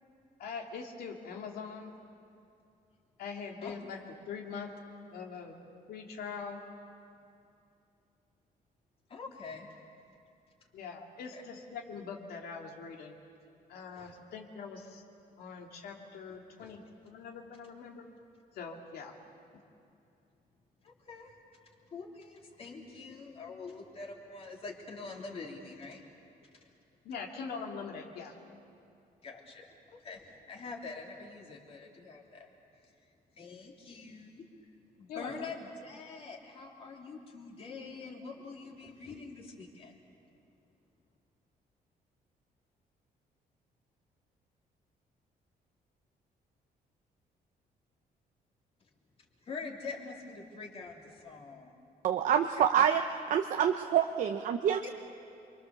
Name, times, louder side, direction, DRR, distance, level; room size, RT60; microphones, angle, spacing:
voice 1, 0.4-1.9 3.2-4.0 4.3-4.7 5.1-5.5 5.9-6.6 10.7-13.1 13.7-15.0 15.4-18.1 18.5-19.1 27.0-28.3 35.1-35.5, left 5 dB, 85° left, 0 dB, 2.6 m, -42 dB
voice 2, 9.1-9.7 11.3-11.4 13.9-14.1 16.6-16.8 20.8-21.4 21.9-26.0 29.2-32.5 33.3-34.4 35.0-39.9 49.4-51.7 52.6-52.9 54.8-54.9, left 4 dB, 40° left, 0 dB, 3.2 m, -45 dB
voice 3, 52.0-53.0 53.3-54.9, right 9 dB, 55° right, 5 dB, 0.8 m, -27 dB
28.5 x 24.0 x 7.1 m, 2.6 s
cardioid pair, 165°, 16 cm